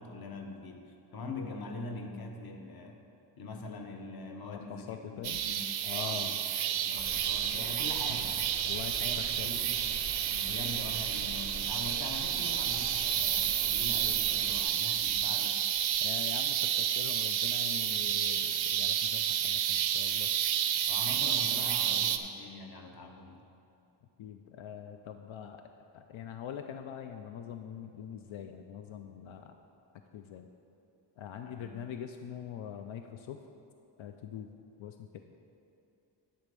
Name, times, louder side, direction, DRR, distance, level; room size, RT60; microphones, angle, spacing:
voice 1, 0.0-3.0 3.4-5.7 5.9-8.6 9.0-9.9 10.2-15.6 20.9-23.5 31.4-31.7, left 3 dB, 50° left, 3 dB, 0.9 m, -43 dB
voice 2, 4.4-5.4 5.8-6.4 8.7-9.0 9.4-9.5 16.0-20.3 24.2-25.6 25.9-29.6 30.1-30.5 31.2-33.4 34.0-34.5 34.8-35.2, left 9 dB, 85° left, 6 dB, 0.6 m, -43 dB
sound 1, 5.2-22.2, right 10 dB, 85° right, 0.6 m, -30 dB
sound 2, 7.0-14.7, right 3 dB, 30° right, 0.5 m, -45 dB
10.5 x 4.1 x 6.8 m, 2.8 s
wide cardioid pair, 165°, 46 cm